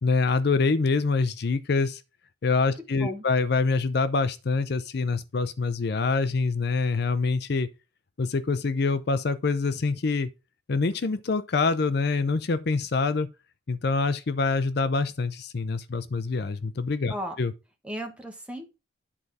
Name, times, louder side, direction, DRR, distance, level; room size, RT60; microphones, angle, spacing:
voice 1, 0.0-2.0 2.4-7.7 8.2-10.3 10.7-13.3 13.7-17.5, left 4 dB, 55° left, 0.5 m, -25 dB
voice 2, 17.8-18.6, equal, 5° right, 1.3 m, -35 dB
9.9 x 4.1 x 4.8 m
head